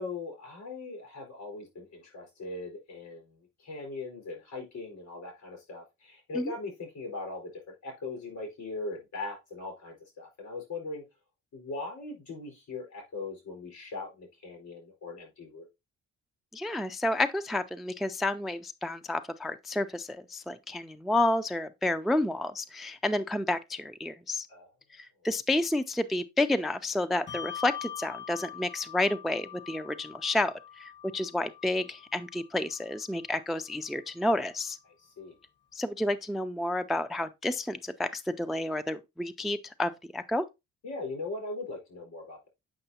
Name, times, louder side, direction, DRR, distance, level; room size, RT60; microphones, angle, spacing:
voice 1, 0.0-3.3 3.6-11.0 11.5-15.7 24.5-24.7 35.0-35.3 40.8-42.5, left 3 dB, 70° left, 4.6 m, -40 dB
voice 2, 16.5-24.5 25.0-34.8 35.7-40.4, left 1 dB, ahead, 0.3 m, -30 dB
Bell, 27.3-34.1, left 9 dB, 35° left, 0.9 m, -44 dB
7.8 x 5.4 x 2.8 m
cardioid pair, 90°, 30 cm